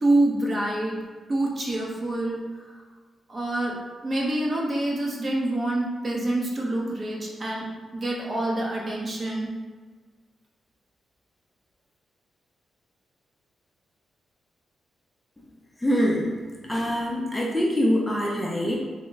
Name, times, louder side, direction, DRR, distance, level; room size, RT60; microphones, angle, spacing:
voice 1, 0.0-1.0 1.3-2.4 3.3-7.7 7.9-9.5, right 1 dB, 35° right, -2 dB, 0.7 m, -26 dB
voice 2, 15.8-18.8, equal, 10° left, -3 dB, 0.5 m, -24 dB
3.5 x 2.1 x 3.9 m, 1.4 s
cardioid pair, 115°, 0 cm